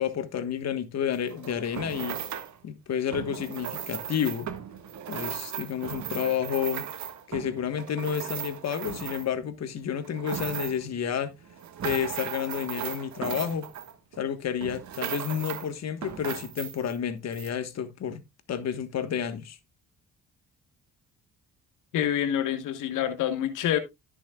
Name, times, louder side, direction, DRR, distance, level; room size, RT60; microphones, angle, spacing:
voice 1, 0.0-2.2 2.6-4.5 5.1-6.8 7.3-11.3 11.8-13.7 14.2-18.2 18.5-19.6, left 8 dB, 60° left, 1.4 m, -30 dB
sound 1, 1.1-2.6 3.1-9.5 9.9-10.9 11.4-14.2 14.6-15.7 16.0-17.0 17.3-17.5, right 9 dB, 70° right, 1.6 m, -37 dB
voice 2, 21.9-23.8, left 10 dB, 85° left, 1.3 m, -27 dB
14.0 x 6.3 x 2.3 m
cardioid pair, 90°, 30 cm